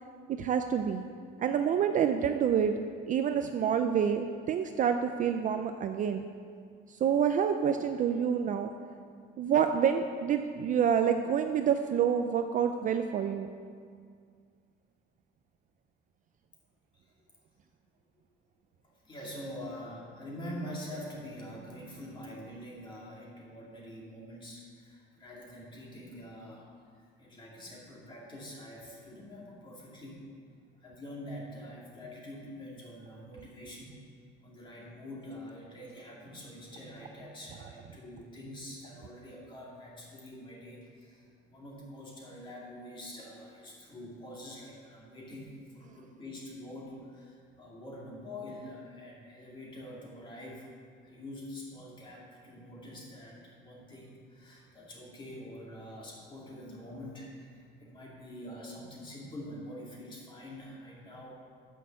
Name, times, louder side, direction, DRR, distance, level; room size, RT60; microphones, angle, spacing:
voice 1, 0.3-1.0 1.4-2.8 3.1-6.3 6.9-8.7 9.4-13.5, right 8 dB, 40° right, 7 dB, 0.4 m, -28 dB
voice 2, 18.8-30.3 30.8-34.0 34.4-50.7 51.0-61.4, left 1 dB, 20° left, -4 dB, 2.2 m, -45 dB
9.3 x 6.5 x 6.8 m, 2.1 s
cardioid pair, 170°, 21 cm